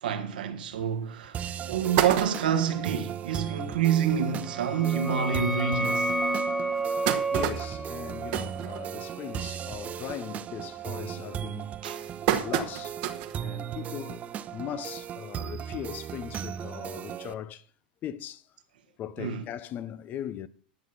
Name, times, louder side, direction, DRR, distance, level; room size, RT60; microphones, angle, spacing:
voice 1, 0.0-6.1 11.8-12.2 19.2-19.4, right 8 dB, 70° right, 1.7 m, -28 dB
sound 1, 0.8-0.9 1.4-1.5 1.7-2.8 3.3-3.4 3.7-3.8 4.1-4.3 5.0-5.1 5.7-5.8 6.5-9.3 9.7-10.0 10.4-10.8 11.4-13.4 13.9-14.0 15.1-15.2, right 11 dB, 55° right, 1.4 m, -30 dB
sound 2, 1.3-17.3, right 9 dB, 30° right, 0.5 m, -37 dB
sound 3, 4.5-9.9, right 2 dB, 5° left, 1.0 m, -31 dB
voice 2, 7.1-11.7 12.4-13.0 13.4-17.7 18.0-18.4 19.0-20.5, left 10 dB, 35° left, 0.7 m, -39 dB
11.5 x 7.7 x 5.7 m
figure-of-eight pair, 90°, 5 cm